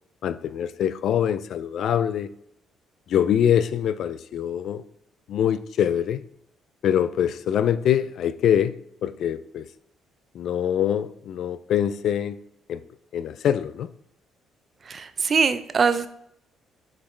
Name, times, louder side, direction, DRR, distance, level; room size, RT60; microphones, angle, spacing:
voice 1, 0.2-2.3 3.1-4.8 5.3-6.2 6.8-9.7 10.3-12.4 12.7-12.8 13.1-13.9, left 9 dB, 65° left, 0.3 m, -24 dB
voice 2, 14.9-16.1, right 5 dB, 40° right, 0.4 m, -22 dB
7.0 x 4.9 x 3.2 m
cardioid pair, 115°, 0 cm